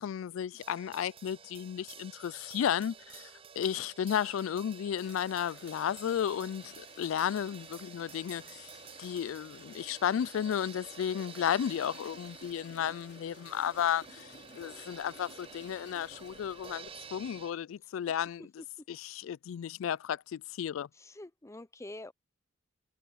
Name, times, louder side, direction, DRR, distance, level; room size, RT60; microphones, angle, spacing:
voice 1, 0.0-3.3 3.6-8.7 9.0-18.5 18.9-20.9, left 9 dB, 90° left, 0.3 m, -33 dB
sound 1, 0.6-17.5, right 7 dB, 30° right, 0.5 m, -51 dB
sound 2, 5.0-17.5, left 4 dB, 60° left, 3.3 m, -56 dB
voice 2, 20.9-22.1, left 1 dB, 15° left, 0.6 m, -46 dB
head